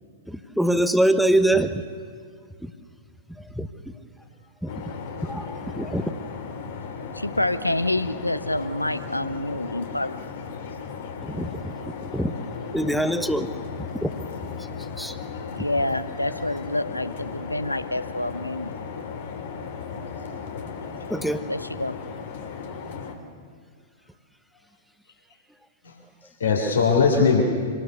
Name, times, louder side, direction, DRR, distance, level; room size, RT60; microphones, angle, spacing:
voice 1, 0.3-1.8 2.6-2.7 3.6-3.7 4.6-4.8 5.2-6.1 11.2-11.6 12.1-12.3 12.7-13.5 14.0-14.1 15.0-15.1 20.1-20.3 21.1-21.4, right 1 dB, ahead, 10 dB, 1.1 m, -23 dB
sound 1, 4.7-23.1, left 5 dB, 55° left, 2.3 m, -36 dB
voice 2, 7.1-10.3 15.6-18.7 21.5-22.0, left 1 dB, 90° left, 13 dB, 0.9 m, -27 dB
voice 3, 20.1-21.1 25.8-27.4, left 5 dB, 70° left, 1 dB, 3.6 m, -24 dB
26.0 x 18.5 x 6.9 m, 2.2 s
figure-of-eight pair, 100°, 0 cm